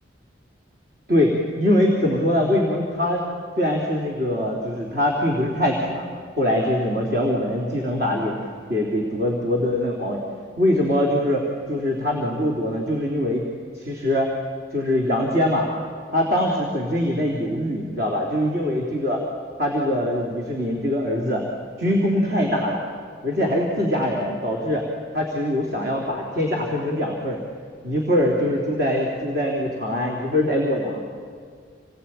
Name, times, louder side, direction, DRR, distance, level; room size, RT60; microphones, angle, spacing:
voice 1, 1.1-3.2 3.6-6.0 6.4-10.2 10.6-13.5 13.7-14.3 14.7-15.7 16.1-19.2 19.6-21.4 21.8-22.8 23.2-24.9 25.1-27.4 27.8-31.0, left 1 dB, 55° right, -1 dB, 3.4 m, -23 dB
28.0 x 20.0 x 9.1 m, 2.1 s
head